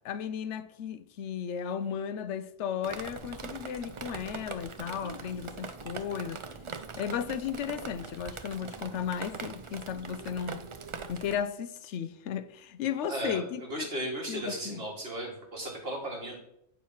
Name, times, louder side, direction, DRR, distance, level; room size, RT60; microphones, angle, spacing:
voice 1, 0.0-6.4 7.0-10.7 11.1-13.9 14.3-14.9, left 8 dB, 85° left, 0.9 m, -35 dB
Drip, 2.8-11.4, right 5 dB, 40° right, 0.4 m, -42 dB
voice 2, 13.1-16.4, right 1 dB, 60° right, 2.4 m, -36 dB
8.9 x 4.7 x 5.5 m
omnidirectional pair, 1.2 m